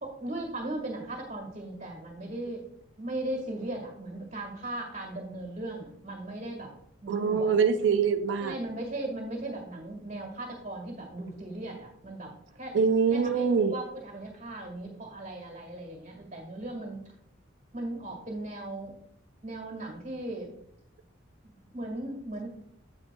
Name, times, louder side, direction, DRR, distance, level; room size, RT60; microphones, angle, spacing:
voice 1, 0.0-2.6 3.0-6.7 7.0-7.5 8.4-12.8 13.1-17.0 17.7-18.9 19.4-20.5 21.4-22.6, right 1 dB, 35° right, 1.6 m, -37 dB
voice 2, 7.1-8.5 12.7-13.7, right 5 dB, 60° right, 0.4 m, -24 dB
8.9 x 8.3 x 2.2 m
head